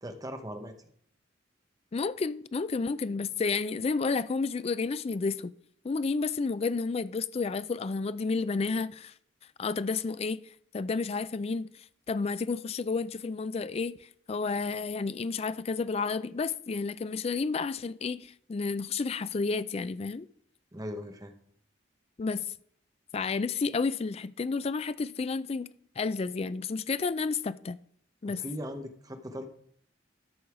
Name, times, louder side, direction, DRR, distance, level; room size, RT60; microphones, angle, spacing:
voice 1, 0.0-0.7 20.7-21.3 28.3-29.5, equal, 20° right, 0.9 m, -39 dB
voice 2, 1.9-5.5 5.8-9.1 9.6-10.4 10.7-14.0 14.3-20.3 22.2-22.5 23.1-25.7 26.0-27.8 28.2-28.4, left 4 dB, 30° left, 0.3 m, -31 dB
13.0 x 5.5 x 4.8 m
head